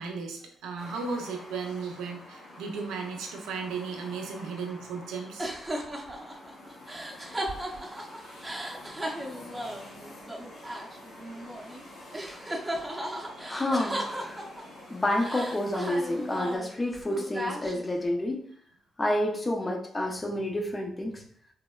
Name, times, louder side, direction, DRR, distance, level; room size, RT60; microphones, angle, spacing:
voice 1, 0.0-5.5 13.3-13.4, right 4 dB, 75° right, 2 dB, 0.5 m, -35 dB
sound 1, 0.8-16.6, left 1 dB, 70° left, 0.7 m, -48 dB
sound 2, 5.4-11.8 12.1-14.8 15.2-18.0, right 1 dB, 20° right, 0.7 m, -36 dB
voice 2, 13.5-14.4 14.9-18.5 19.0-21.2, left 1 dB, 30° left, 1 dB, 0.6 m, -29 dB
3.1 x 2.0 x 2.2 m, 0.66 s
hypercardioid pair, 45°, 0 cm